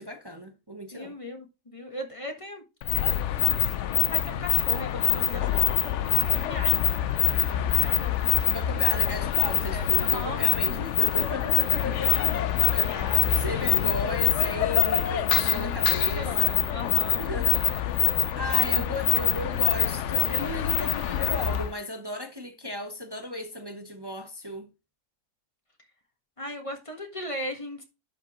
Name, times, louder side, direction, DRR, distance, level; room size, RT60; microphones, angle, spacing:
voice 1, 0.0-1.2 8.4-12.2 12.7-16.6 17.2-18.1 18.4-24.7, left 1 dB, 20° right, 0.6 m, -35 dB
voice 2, 0.9-2.6 3.9-5.6 6.2-8.8 9.7-10.4 11.8-12.4 12.8-14.2 15.4-15.7 16.1-17.3 18.7-19.1 26.4-27.8, left 1 dB, 20° left, 1.4 m, -39 dB
sound 1, 2.8-21.7, left 11 dB, 90° left, 0.6 m, -25 dB
11.5 x 5.1 x 3.1 m
omnidirectional pair, 1.9 m